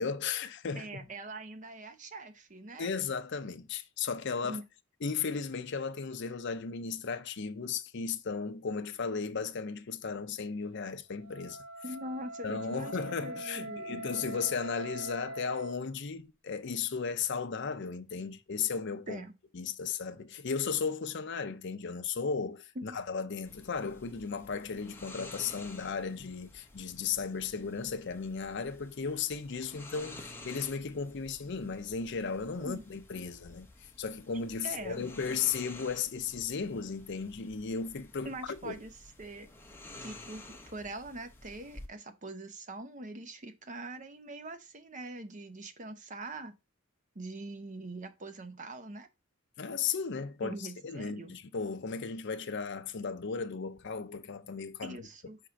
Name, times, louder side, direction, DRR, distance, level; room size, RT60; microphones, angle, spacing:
voice 1, 0.0-1.0 2.8-4.6 5.0-11.6 12.4-19.2 19.5-38.3 38.6-38.7 49.6-55.0, left 5 dB, 60° left, 0.6 m, -35 dB
voice 2, 0.8-2.9 4.4-4.6 11.8-14.0 19.1-19.3 22.8-23.0 32.6-32.8 34.6-35.0 38.2-39.5 40.0-46.5 47.1-49.1 50.4-51.4 54.8-55.4, right 2 dB, 40° right, 0.9 m, -43 dB
Wind instrument woodwind instrument, 11.2-15.8, right 1 dB, 10° right, 1.6 m, -43 dB
sound 1, 23.4-41.9, left 2 dB, 10° left, 1.0 m, -51 dB
5.0 x 3.7 x 5.7 m
head